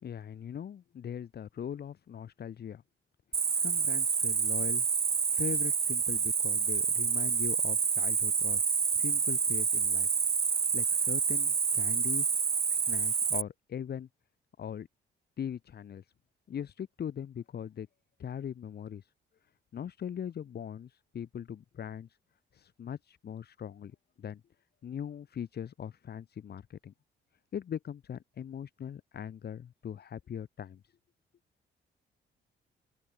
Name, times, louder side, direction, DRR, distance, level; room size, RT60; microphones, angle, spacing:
voice 1, 0.0-2.8 3.3-4.9 5.3-10.1 10.5-12.3 12.7-14.1 14.6-14.9 15.4-16.1 16.5-17.9 18.2-19.1 19.7-22.2 22.5-24.4 24.8-26.9 27.5-31.0, left 8 dB, 55° left, 1.7 m, -40 dB
Cricket, 3.3-13.4, right 6 dB, 30° right, 0.8 m, -28 dB
open air
cardioid pair, 90°, 20 cm